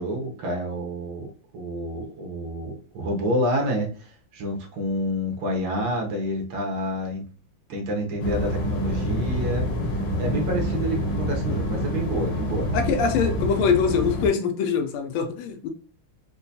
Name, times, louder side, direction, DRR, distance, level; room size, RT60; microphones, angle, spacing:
voice 1, 0.0-7.3 7.7-9.7 10.2-12.7, equal, 75° right, 1 dB, 1.8 m, -28 dB
sound 1, 8.2-14.3, equal, 70° left, 1.2 m, -27 dB
voice 2, 12.7-15.7, left 6 dB, 85° left, 7 dB, 1.5 m, -23 dB
4.6 x 2.2 x 2.7 m, 0.40 s
omnidirectional pair, 2.3 m